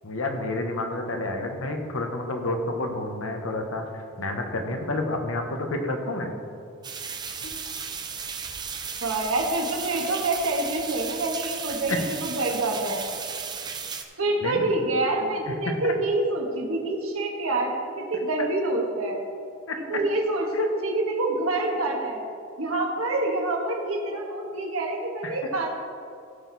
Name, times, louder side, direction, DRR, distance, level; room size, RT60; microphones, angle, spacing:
voice 1, 0.0-3.8 4.2-6.4 11.9-12.0 14.4-14.7 15.5-15.9 19.7-19.8 20.5-20.7 25.2-25.4, left 2 dB, 80° left, 4 dB, 1.3 m, -29 dB
sound 1, 6.8-14.0, right 6 dB, 20° right, 0.6 m, -35 dB
voice 2, 9.0-13.1 14.2-19.2 19.9-20.5 20.8-22.2 22.6-25.7, right 2 dB, 90° right, 0 dB, 1.7 m, -27 dB
15.0 x 6.3 x 4.2 m, 2.3 s
head